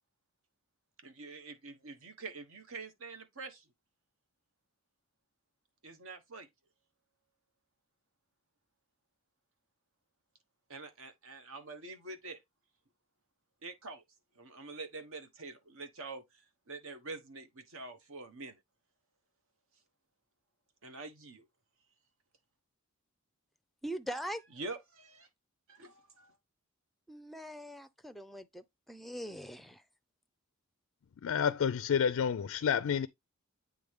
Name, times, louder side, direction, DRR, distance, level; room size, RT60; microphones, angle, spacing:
voice 1, 1.0-3.6 5.8-6.5 10.7-12.4 13.6-14.0 14.4-16.2 16.7-18.6 20.8-21.4 24.6-25.3 25.7-26.3, right 3 dB, 65° right, 1.3 m, -46 dB
voice 2, 23.8-24.4 27.1-29.8, equal, ahead, 0.5 m, -42 dB
voice 3, 31.2-33.1, left 7 dB, 65° left, 0.4 m, -29 dB
8.4 x 3.5 x 3.6 m
head